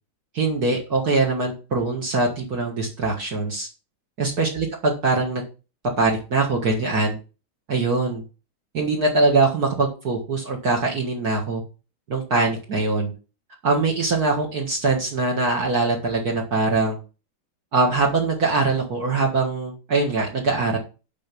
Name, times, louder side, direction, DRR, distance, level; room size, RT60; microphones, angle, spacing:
voice 1, 0.3-3.7 4.2-5.4 6.0-7.2 7.7-8.2 8.7-11.6 12.1-13.1 13.6-17.0 17.7-20.8, right 3 dB, 50° right, -1 dB, 2.2 m, -22 dB
11.5 x 4.0 x 6.8 m, 0.33 s
omnidirectional pair, 2.1 m